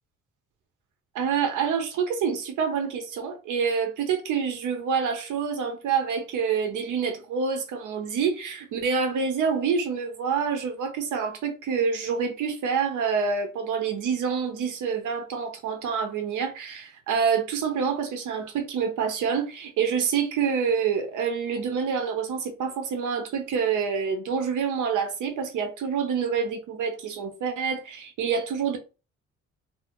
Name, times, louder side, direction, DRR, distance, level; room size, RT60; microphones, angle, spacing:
voice 1, 1.1-28.8, right 6 dB, 80° right, 0.9 m, -27 dB
2.8 x 2.7 x 2.9 m
cardioid pair, 90°, 30 cm